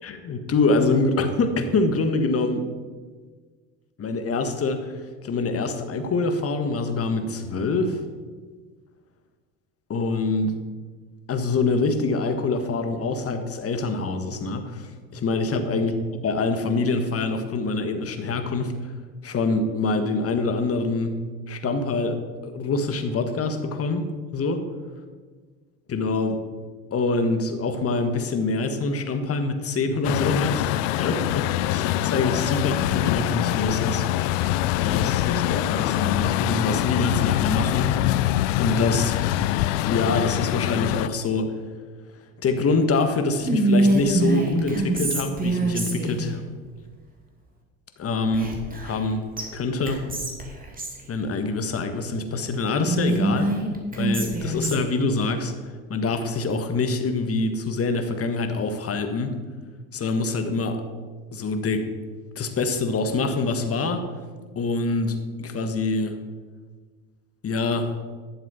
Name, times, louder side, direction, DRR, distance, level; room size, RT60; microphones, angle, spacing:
voice 1, 0.0-2.7 4.0-8.0 9.9-10.5 11.3-18.7 19.2-21.1 21.5-22.2 22.4-24.1 24.3-24.6 25.9-26.4 26.9-34.1 34.4-39.2 39.9-41.5 42.4-46.4 48.0-48.5 48.8-49.2 49.5-50.0 51.1-53.5 54.0-55.5 55.9-59.3 59.9-60.8 61.3-61.8 62.3-64.0 64.5-66.1 67.4-67.9, left 3 dB, 40° left, 7 dB, 1.5 m, -25 dB
Truck, 30.0-41.1, left 14 dB, 80° left, 0.5 m, -24 dB
Whispering, 43.5-46.3 48.3-49.1 49.4-49.5 49.9-51.0 52.8-55.0, right 2 dB, 20° right, 2.6 m, -24 dB
11.0 x 7.3 x 5.6 m, 1.5 s
hypercardioid pair, 75°, 38 cm